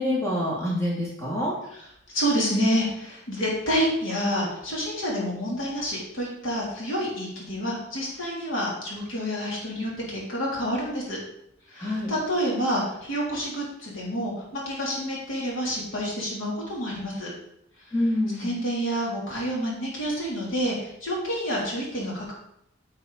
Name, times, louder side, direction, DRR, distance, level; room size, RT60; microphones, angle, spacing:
voice 1, 0.0-1.6 11.8-12.1 17.9-18.5, left 1 dB, 15° left, -6 dB, 3.0 m, -26 dB
voice 2, 2.1-11.2 11.7-17.3 18.4-22.3, equal, 90° left, -4 dB, 3.4 m, -28 dB
8.8 x 8.1 x 4.1 m, 0.75 s
head